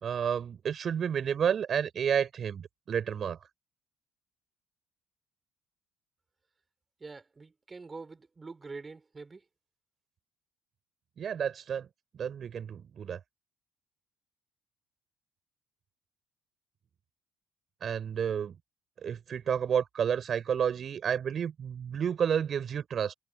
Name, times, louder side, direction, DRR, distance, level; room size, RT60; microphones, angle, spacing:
voice 1, 0.0-3.4 11.2-11.9 12.1-13.2 17.8-18.6 19.0-23.1, right 8 dB, 50° right, 4.7 m, -30 dB
voice 2, 7.0-9.4, right 4 dB, 25° right, 5.1 m, -45 dB
hypercardioid pair, 65°, 0 cm